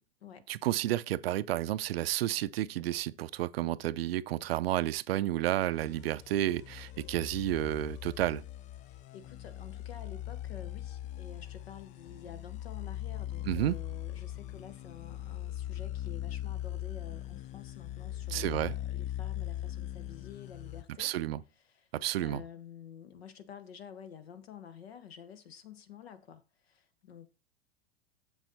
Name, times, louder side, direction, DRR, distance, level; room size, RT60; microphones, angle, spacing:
voice 1, 0.5-8.4 13.5-13.8 18.3-18.8 21.0-21.4 21.9-22.4, right 14 dB, 65° right, 0.6 m, -31 dB
sound 1, 5.8-20.8, left 13 dB, 25° left, 0.4 m, -40 dB
voice 2, 8.9-21.1 21.7-21.9 22.2-27.3, left 8 dB, 70° left, 1.4 m, -50 dB
7.3 x 7.0 x 4.1 m
figure-of-eight pair, 90°, 32 cm